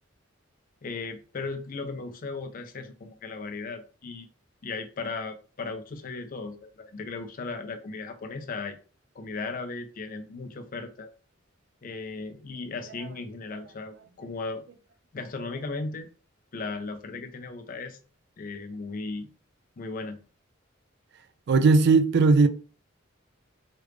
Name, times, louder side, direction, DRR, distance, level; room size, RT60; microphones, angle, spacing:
voice 1, 0.8-4.3 4.6-8.8 9.2-11.1 11.8-14.6 15.1-16.1 16.5-18.0 18.4-19.3 19.8-20.2, left 3 dB, 45° left, 0.5 m, -36 dB
voice 2, 21.5-22.5, right 4 dB, 55° right, 0.3 m, -18 dB
3.2 x 2.4 x 3.2 m
head